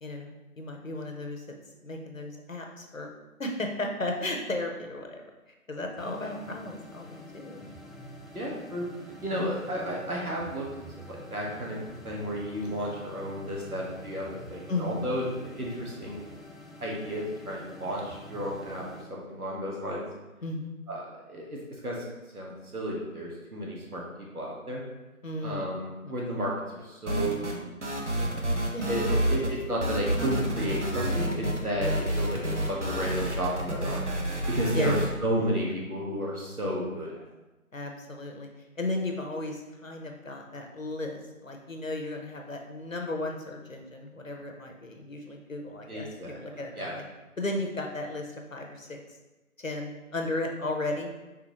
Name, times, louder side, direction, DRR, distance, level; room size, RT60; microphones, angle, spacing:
voice 1, 0.0-1.6 1.8-3.1 3.4-5.2 5.5-7.7 9.3-9.7 14.7-15.1 20.4-20.7 25.2-25.7 26.0-26.1 28.7-29.6 34.7-35.0 37.7-38.5 38.8-47.0 47.4-49.0 49.6-51.1, left 2 dB, 65° left, 2 dB, 0.8 m, -35 dB
sound 1, 6.0-19.0, left 1 dB, ahead, 0.4 m, -47 dB
voice 2, 8.3-11.8 12.0-16.3 16.8-18.8 19.1-20.0 20.9-22.0 22.3-24.0 24.3-24.8 25.4-28.3 28.9-32.4 32.7-34.0 34.5-37.1 45.9-46.9, equal, 85° right, -3 dB, 1.5 m, -33 dB
sound 2, 27.1-27.6 27.8-29.5 29.8-35.1, right 1 dB, 55° right, 0.7 m, -29 dB
4.9 x 3.4 x 3.0 m, 1.1 s
figure-of-eight pair, 175°, 44 cm